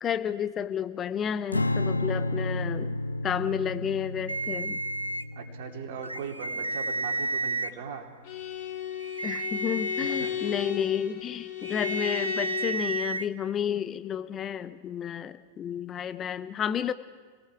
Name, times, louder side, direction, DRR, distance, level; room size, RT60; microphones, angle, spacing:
voice 1, 0.0-3.0 3.2-4.8 9.2-16.9, left 8 dB, 25° left, 12 dB, 0.9 m, -31 dB
Strum, 1.5-7.9, left 2 dB, 80° left, 0.5 m, -32 dB
sound 1, 4.3-5.2 6.0-7.7 9.0-10.3 11.6-13.3, right 2 dB, 85° right, 0.5 m, -32 dB
voice 2, 5.3-8.1 10.0-10.5, right 6 dB, 55° right, 3 dB, 2.7 m, -40 dB
Bowed string instrument, 8.2-12.9, left 10 dB, 45° left, 2.7 m, -35 dB
29.0 x 19.0 x 4.7 m, 1.5 s
figure-of-eight pair, 90°, 0 cm